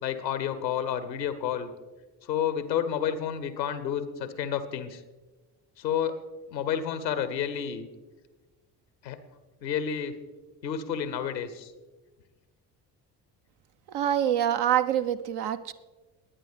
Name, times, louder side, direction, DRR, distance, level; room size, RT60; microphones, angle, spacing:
voice 1, 0.0-1.7 2.2-5.0 5.8-6.2 6.5-7.9 9.0-9.2 9.6-10.1 10.6-11.7, left 8 dB, 85° left, 13 dB, 0.9 m, -30 dB
voice 2, 13.9-15.7, right 10 dB, 55° right, 11 dB, 0.8 m, -26 dB
20.0 x 9.0 x 3.4 m, 1.2 s
figure-of-eight pair, 50°, 50 cm